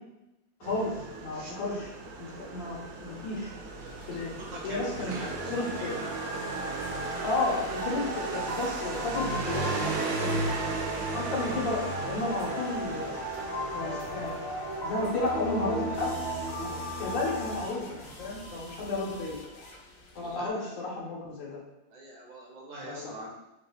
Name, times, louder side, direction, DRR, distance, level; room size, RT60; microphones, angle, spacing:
voice 1, 0.6-1.9 2.2-3.5 4.1-4.3 4.6-5.1 5.5-6.0 7.2-10.7 11.1-13.1 13.7-14.4 14.8-16.1 16.6-16.7 17.0-19.4 20.2-21.6 22.8-23.1, left 2 dB, 85° left, -3 dB, 1.7 m, -32 dB
Motorcycle, 0.6-19.4, right 4 dB, 85° right, 1.3 m, -37 dB
sound 1, 3.9-20.4, left 2 dB, 60° left, 1.0 m, -51 dB
voice 2, 4.4-6.2 20.2-20.7 21.9-23.3, right 1 dB, 50° right, -2 dB, 1.1 m, -44 dB
sound 2, 4.9-17.6, equal, 35° left, 0.6 m, -36 dB
4.9 x 3.4 x 2.3 m, 0.93 s
omnidirectional pair, 2.0 m